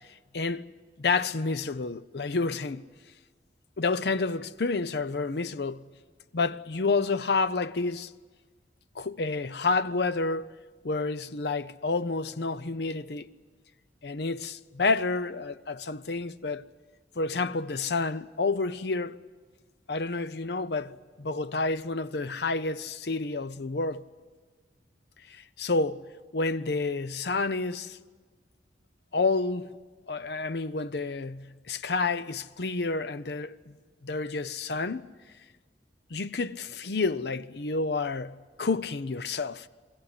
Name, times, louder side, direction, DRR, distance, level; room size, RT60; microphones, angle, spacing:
voice 1, 0.3-0.7 1.0-2.9 3.8-5.9 6.3-8.1 9.0-10.5 10.8-13.3 14.0-16.7 17.2-19.2 19.9-24.0 25.3-26.1 26.3-28.0 29.1-29.7 30.1-33.7 34.0-35.1 36.1-39.7, left 3 dB, 65° left, 0.6 m, -29 dB
23.5 x 16.0 x 9.7 m
head